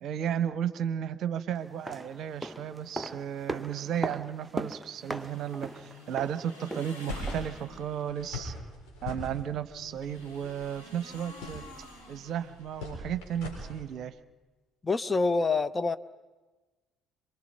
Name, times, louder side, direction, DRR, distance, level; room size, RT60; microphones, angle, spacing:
voice 1, 0.0-8.5 9.0-11.6 12.1-14.1, right 9 dB, 50° right, 13 dB, 0.9 m, -34 dB
sound 1, 1.6-7.6 7.9-8.0, right 2 dB, 5° right, 1.0 m, -39 dB
sound 2, 5.1-8.2 9.7-13.0, left 2 dB, 85° left, 3.7 m, -50 dB
sound 3, 7.1-13.8, left 2 dB, 60° left, 7.5 m, -42 dB
voice 2, 14.8-16.0, left 3 dB, 25° left, 13 dB, 0.8 m, -26 dB
27.0 x 22.5 x 5.9 m, 1.2 s
figure-of-eight pair, 50°, 0 cm